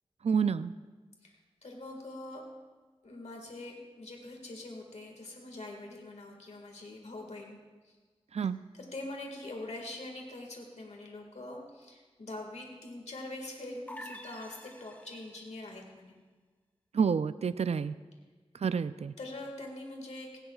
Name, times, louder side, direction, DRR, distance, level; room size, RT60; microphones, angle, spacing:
voice 1, 0.2-0.7 8.3-8.6 16.9-17.9 18.6-19.1, right 6 dB, 70° right, 13 dB, 0.4 m, -29 dB
voice 2, 1.2-2.4 3.0-7.6 7.8-8.0 8.7-16.2 19.2-20.4, left 2 dB, 85° left, 1 dB, 1.9 m, -44 dB
sound 1, 13.9-15.5, equal, 15° left, 1.2 m, -47 dB
17.5 x 17.0 x 2.4 m, 1.4 s
wide cardioid pair, 60°, 11 cm